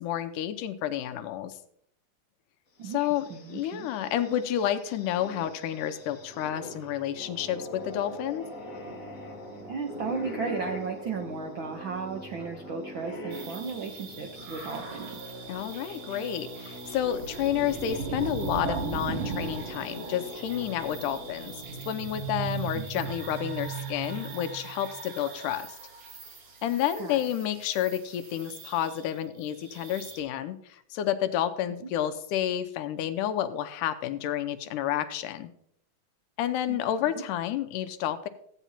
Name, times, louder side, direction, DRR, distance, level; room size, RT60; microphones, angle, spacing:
voice 1, 0.0-1.5 2.9-8.5 15.5-21.5 21.9-25.7 26.6-35.5 36.4-38.3, left 11 dB, 85° left, 10 dB, 2.2 m, -30 dB
sound 1, 2.8-15.1 15.5-15.6 16.7-17.9, left 1 dB, 50° left, 1.0 m, -43 dB
voice 2, 2.8-3.9 9.7-15.2 22.7-23.0 27.0-27.2 36.6-36.8 37.2-37.3, right 5 dB, 85° right, 3 dB, 1.1 m, -35 dB
sound 2, 5.5-23.6, equal, 30° right, 1.9 m, -46 dB
sound 3, 13.3-30.2, right 5 dB, 55° right, 2.7 m, -38 dB
15.5 x 9.1 x 2.9 m, 0.70 s
omnidirectional pair, 3.7 m